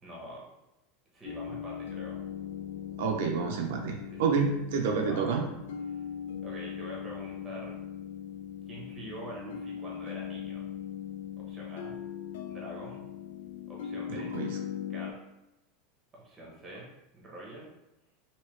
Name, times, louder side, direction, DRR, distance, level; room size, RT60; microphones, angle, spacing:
voice 1, 0.0-0.4 1.1-2.2 4.1-4.3 5.1-5.4 5.9-6.0 6.4-7.8 8.7-10.7 11.4-12.0 12.5-13.0 13.7-14.4 14.8-15.2 16.1-16.9 17.1-17.7, right 1 dB, 15° right, -4 dB, 0.9 m, -45 dB
sound 1, 1.2-15.1, left 9 dB, 85° left, 0.3 m, -40 dB
voice 2, 3.0-5.5 14.1-14.5, right 5 dB, 70° right, 2 dB, 0.5 m, -29 dB
3.2 x 2.7 x 3.1 m, 0.94 s
supercardioid pair, 175°, 0 cm